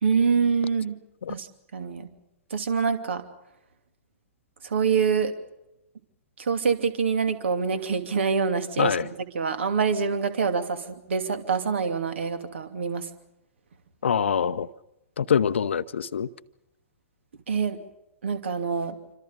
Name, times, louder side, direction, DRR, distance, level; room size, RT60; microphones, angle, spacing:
voice 1, 0.0-1.0 1.3-1.5 1.7-2.1 2.5-3.2 4.6-5.3 6.4-10.8 11.1-13.0 17.5-17.8 18.2-19.0, right 5 dB, 60° right, 2.7 m, -25 dB
voice 2, 14.0-14.7 15.2-16.3, left 7 dB, 60° left, 0.9 m, -24 dB
27.5 x 25.5 x 5.3 m
figure-of-eight pair, 110°, 7 cm